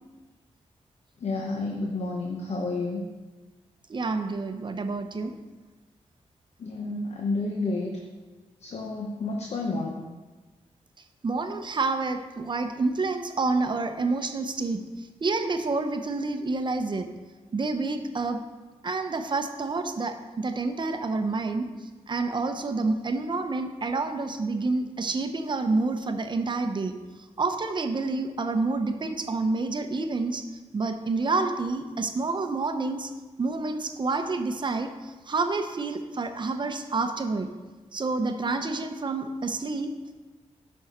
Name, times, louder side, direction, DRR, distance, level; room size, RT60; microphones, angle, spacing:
voice 1, 1.2-3.0 6.6-7.9 8.6-10.0, left 3 dB, 60° left, 0 dB, 0.9 m, -30 dB
voice 2, 3.9-5.3 11.2-14.8 15.2-17.1 17.5-18.4 18.8-21.7 22.1-26.9 27.4-30.4 30.7-33.1 33.4-34.9 35.3-37.5 37.9-39.9, right 3 dB, 40° right, 7 dB, 0.7 m, -28 dB
8.7 x 5.5 x 4.2 m, 1.3 s
wide cardioid pair, 95°, 12 cm